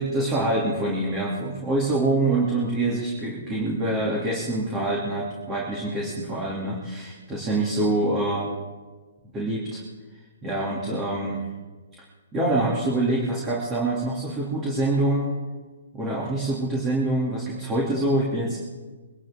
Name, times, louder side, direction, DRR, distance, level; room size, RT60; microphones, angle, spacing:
voice 1, 0.0-8.5 9.3-9.8 10.4-11.4 12.3-15.3 15.9-18.6, right 2 dB, 15° right, -4 dB, 2.8 m, -25 dB
23.5 x 12.0 x 3.7 m, 1.3 s
hypercardioid pair, 155°, 0 cm